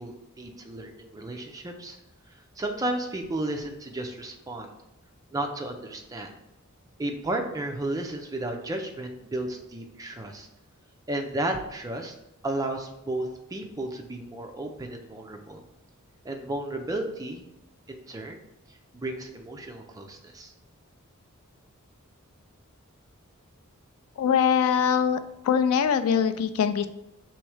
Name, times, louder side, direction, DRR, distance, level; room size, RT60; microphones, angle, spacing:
voice 1, 0.0-2.0 2.6-4.7 5.3-6.3 7.0-10.5 11.1-12.1 12.4-15.6 16.2-17.5 17.9-18.4 18.9-20.5, right 1 dB, 15° right, 3 dB, 0.4 m, -33 dB
voice 2, 24.2-25.2 25.4-26.9, left 7 dB, 75° left, 11 dB, 0.3 m, -22 dB
3.5 x 3.1 x 4.7 m, 0.92 s
head